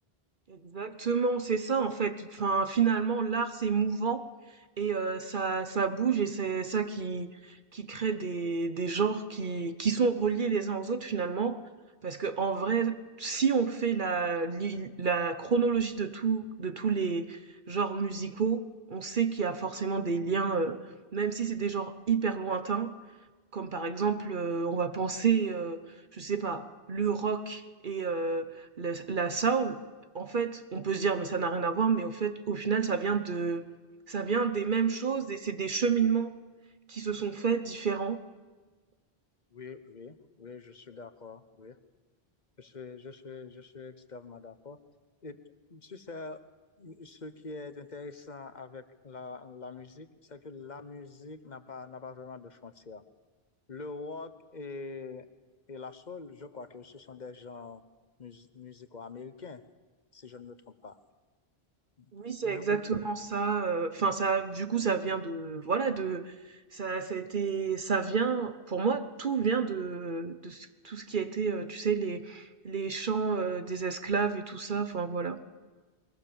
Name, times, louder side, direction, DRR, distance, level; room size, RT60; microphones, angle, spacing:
voice 1, 0.5-4.2 4.8-11.6 12.0-17.4 17.7-18.6 18.9-20.8 21.1-22.9 23.5-25.8 26.1-29.8 30.1-33.6 34.1-36.4 36.9-38.2 62.1-66.3 66.7-75.4, right 5 dB, 55° right, 10 dB, 1.1 m, -30 dB
voice 2, 39.5-41.8 42.6-44.8 45.2-45.4 45.7-46.4 46.8-53.0 53.7-55.3 55.7-57.8 58.2-59.6 60.1-60.6 60.8-61.0 62.4-63.1, left 4 dB, 45° left, 11 dB, 1.2 m, -44 dB
22.0 x 21.0 x 7.0 m, 1.3 s
omnidirectional pair, 1.1 m